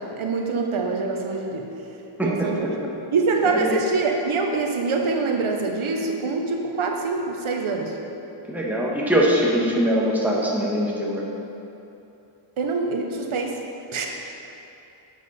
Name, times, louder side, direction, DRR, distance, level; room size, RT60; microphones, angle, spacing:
voice 1, 0.0-1.7 2.2-2.8 3.1-8.0 12.6-13.6 13.9-14.1, right 4 dB, 75° right, 2 dB, 1.0 m, -25 dB
voice 2, 8.5-11.2, equal, 5° right, -5 dB, 1.4 m, -22 dB
11.5 x 7.3 x 4.3 m, 2.8 s
wide cardioid pair, 165°, 50 cm